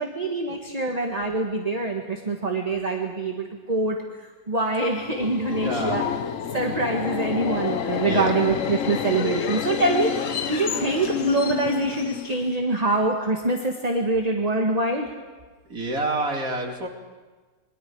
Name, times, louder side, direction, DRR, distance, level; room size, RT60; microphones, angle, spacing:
voice 1, 0.0-4.0 4.5-6.0 6.5-15.1, right 2 dB, 20° right, 1 dB, 1.5 m, -25 dB
Subway metro underground, 4.9-12.7, left 8 dB, 55° left, 1.1 m, -29 dB
voice 2, 5.5-6.0 8.1-8.3 15.7-16.9, right 2 dB, 50° right, 0 dB, 3.2 m, -28 dB
28.0 x 24.0 x 4.8 m, 1.3 s
omnidirectional pair, 2.0 m